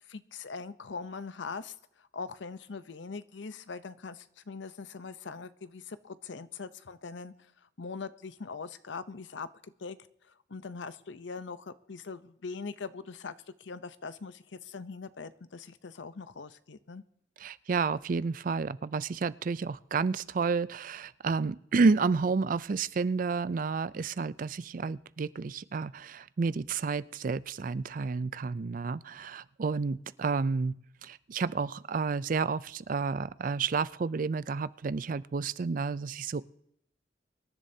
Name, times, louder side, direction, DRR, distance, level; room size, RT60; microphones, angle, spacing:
voice 1, 0.1-7.3 7.8-10.0 10.5-17.0, left 4 dB, 80° left, 14 dB, 0.7 m, -42 dB
voice 2, 17.4-30.7 31.0-36.4, right 4 dB, 45° right, 17 dB, 0.4 m, -30 dB
25.0 x 11.0 x 2.8 m, 0.75 s
head